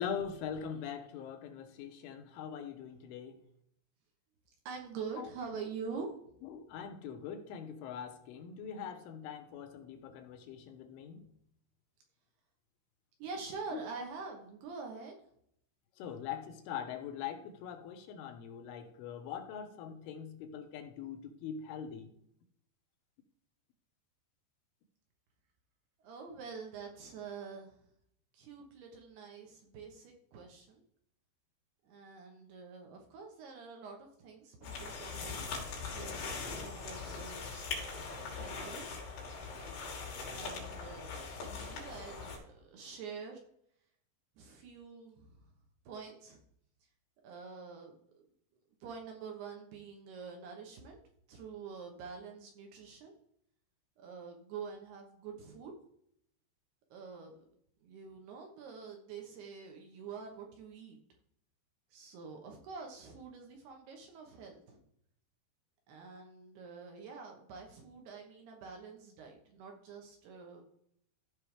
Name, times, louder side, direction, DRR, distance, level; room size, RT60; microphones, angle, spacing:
voice 1, 0.0-3.4 5.2-5.6 6.4-11.3 13.7-13.8 16.0-22.1, left 8 dB, 80° left, 3.4 m, -42 dB
voice 2, 4.7-6.1 13.2-15.1 26.0-27.8 28.3-30.8 31.8-35.4 35.9-37.7 38.3-38.8 40.3-43.4 44.4-45.4 45.9-46.4 47.2-48.2 48.8-51.0 51.3-53.1 54.0-55.7 56.9-57.4 57.8-61.0 61.9-64.8 65.9-70.6, right 5 dB, 70° right, 2.7 m, -46 dB
sound 1, 34.6-42.4, left 4 dB, 60° left, 4.4 m, -41 dB
15.0 x 5.5 x 3.4 m
omnidirectional pair, 5.6 m